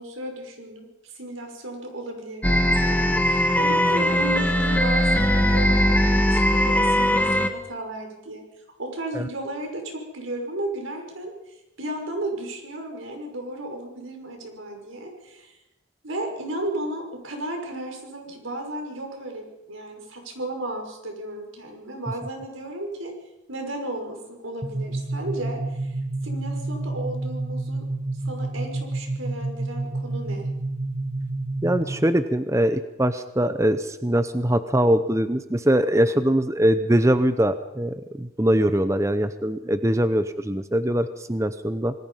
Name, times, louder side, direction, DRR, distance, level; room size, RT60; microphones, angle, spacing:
voice 1, 0.0-8.4 8.8-15.6 16.0-23.1 23.5-27.8 28.2-30.5, right 1 dB, 90° right, 3 dB, 5.8 m, -34 dB
sound 1, 2.4-7.5, equal, 10° left, 1.4 m, -20 dB
sound 2, 24.6-32.2, right 2 dB, 35° right, 1.0 m, -29 dB
voice 2, 31.6-41.9, right 1 dB, 15° right, 11 dB, 0.7 m, -22 dB
26.5 x 20.0 x 5.6 m, 0.92 s
head